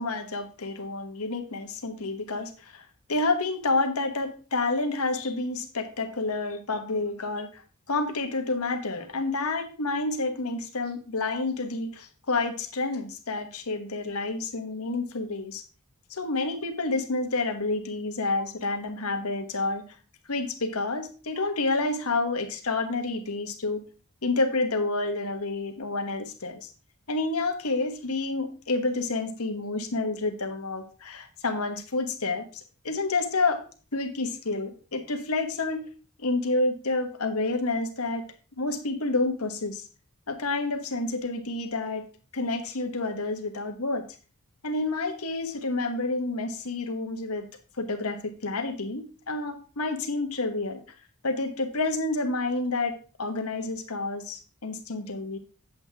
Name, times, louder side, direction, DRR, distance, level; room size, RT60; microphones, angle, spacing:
voice 1, 0.0-7.6 7.9-15.6 16.1-19.8 20.3-23.8 24.2-26.7 27.1-33.6 33.9-35.8 36.2-38.2 38.6-39.8 40.3-42.0 42.3-44.0 44.6-47.5 47.8-50.8 51.2-52.9 53.2-55.4, left 3 dB, 85° left, 6 dB, 1.3 m, -29 dB
7.9 x 7.8 x 3.5 m, 0.37 s
head